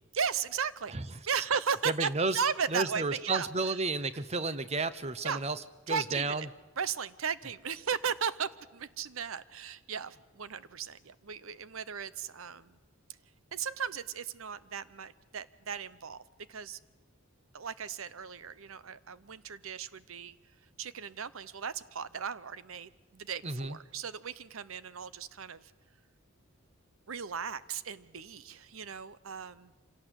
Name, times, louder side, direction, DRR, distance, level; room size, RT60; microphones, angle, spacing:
voice 1, 0.1-0.9 1.3-3.8 5.2-5.4 5.9-6.5 6.8-12.8 13.5-16.2 16.5-16.8 17.5-20.4 20.8-25.7 27.1-29.7, right 6 dB, 75° right, 16 dB, 0.8 m, -36 dB
voice 2, 1.9-2.4 2.7-5.6 5.9-6.5 23.4-23.8, right 3 dB, 30° right, 13 dB, 0.9 m, -32 dB
26.0 x 17.5 x 8.1 m, 1.2 s
head